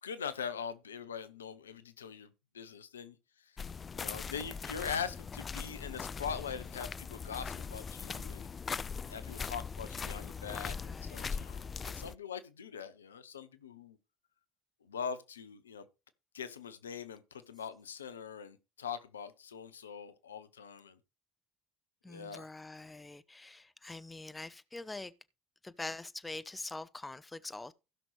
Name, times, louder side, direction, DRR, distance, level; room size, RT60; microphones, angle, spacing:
voice 1, 0.0-3.6 3.9-8.5 9.1-14.0 14.8-15.8 16.3-21.0 22.1-22.5, left 7 dB, 85° left, 0.7 m, -42 dB
sound 1, 3.6-12.1, left 5 dB, 30° left, 0.4 m, -40 dB
voice 2, 10.2-11.5 22.0-25.1 25.6-27.7, left 2 dB, 15° left, 0.8 m, -45 dB
16.0 x 6.0 x 3.2 m
hypercardioid pair, 60°, 0 cm